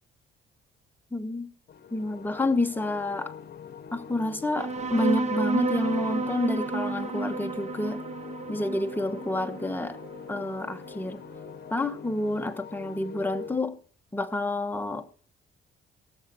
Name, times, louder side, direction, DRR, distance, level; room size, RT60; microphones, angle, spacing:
voice 1, 1.1-1.5 1.9-3.3 3.9-8.0 8.5-10.0 10.3-11.2 11.7-13.8 14.1-15.3, left 2 dB, 10° left, 1.0 m, -29 dB
sound 1, 1.7-13.6, left 7 dB, 55° left, 1.0 m, -44 dB
sound 2, 4.6-11.5, right 3 dB, 35° right, 1.2 m, -31 dB
16.5 x 7.3 x 4.3 m
cardioid pair, 90°, 20 cm